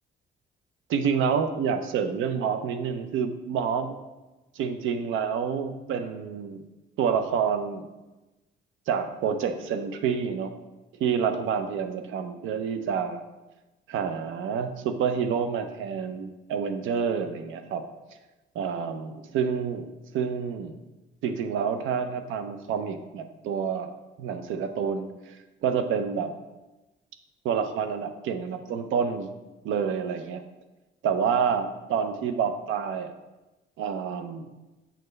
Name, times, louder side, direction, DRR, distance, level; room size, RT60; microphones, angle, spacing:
voice 1, 0.9-4.0 4.5-6.6 7.0-7.9 8.9-10.5 11.0-13.2 13.9-17.8 18.5-19.9 20.1-20.7 21.2-23.9 24.2-26.3 27.4-29.3 29.6-30.4 31.0-33.1 33.8-34.5, right 6 dB, 85° right, 9 dB, 0.6 m, -28 dB
7.7 x 4.6 x 3.2 m, 1.1 s
cardioid pair, 90°, 20 cm